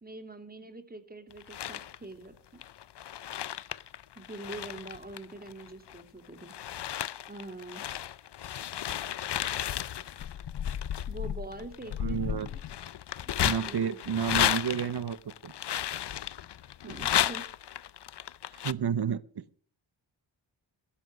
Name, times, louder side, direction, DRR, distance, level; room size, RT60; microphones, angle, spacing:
voice 1, 0.0-2.6 4.2-6.5 7.3-7.8 11.1-12.6 13.6-14.5 16.8-17.5, right 2 dB, 20° right, 7 dB, 2.6 m, -44 dB
sound 1, 1.3-2.0 2.6-6.0 6.4-18.7, left 10 dB, 60° left, 0.6 m, -33 dB
voice 2, 12.0-12.5 13.4-15.2 15.4-15.5 16.8-17.0 18.6-19.6, right 8 dB, 55° right, 17 dB, 0.9 m, -31 dB
16.0 x 12.0 x 5.1 m, 0.43 s
wide cardioid pair, 110°, 46 cm